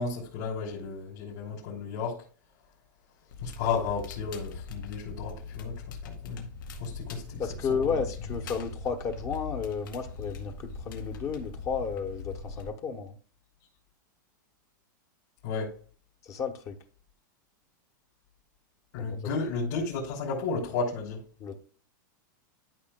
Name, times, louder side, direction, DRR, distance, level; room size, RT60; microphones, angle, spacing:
voice 1, 0.0-2.2 3.4-6.5 6.8-8.0 15.4-15.8 18.9-21.2, left 4 dB, 65° left, 3.3 m, -33 dB
Crackle, 3.3-12.7, left 5 dB, 80° left, 2.2 m, -41 dB
voice 2, 7.4-13.2 16.2-16.8 19.0-19.3 21.4-21.6, left 5 dB, 30° left, 0.9 m, -33 dB
13.0 x 5.6 x 2.2 m
supercardioid pair, 155°, 11 cm